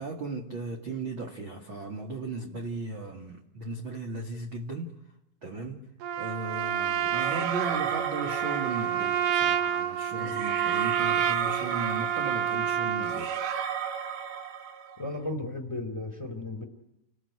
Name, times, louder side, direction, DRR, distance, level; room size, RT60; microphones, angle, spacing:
voice 1, 0.0-4.9 5.4-5.9 6.1-13.3, right 3 dB, 45° right, 1 dB, 1.7 m, -36 dB
Trumpet, 6.0-13.3, right 9 dB, 70° right, 2.2 m, -29 dB
sound 1, 7.1-9.3 10.2-15.1, right 8 dB, 85° right, 4.7 m, -34 dB
voice 2, 15.0-16.6, left 2 dB, 5° left, 5 dB, 3.0 m, -35 dB
29.0 x 21.0 x 9.6 m, 0.86 s
omnidirectional pair, 5.5 m